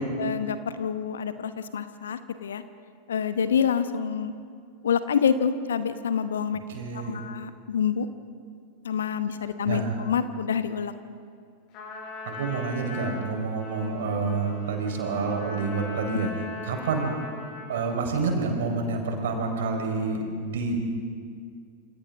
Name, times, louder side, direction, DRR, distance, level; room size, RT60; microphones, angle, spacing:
voice 1, 0.0-2.6 3.1-4.3 4.8-6.6 6.9-8.1 8.8-10.9, left 7 dB, 65° left, 11 dB, 1.1 m, -27 dB
voice 2, 6.7-7.2 9.6-10.0 12.2-17.3 17.7-20.7, right 4 dB, 60° right, 2 dB, 4.5 m, -28 dB
Trumpet, 11.7-18.0, left 3 dB, 40° left, 7.0 m, -40 dB
28.5 x 28.0 x 3.7 m, 2.2 s
figure-of-eight pair, 90°, 0 cm